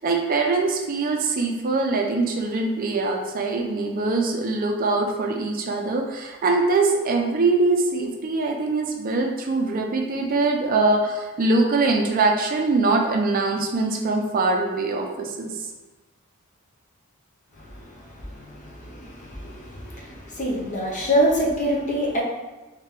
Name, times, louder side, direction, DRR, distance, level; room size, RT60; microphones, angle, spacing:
voice 1, 0.0-15.6, right 3 dB, 40° right, 2 dB, 0.4 m, -23 dB
voice 2, 17.6-22.2, equal, 35° left, -3 dB, 0.8 m, -26 dB
3.2 x 3.2 x 3.3 m, 1.2 s
head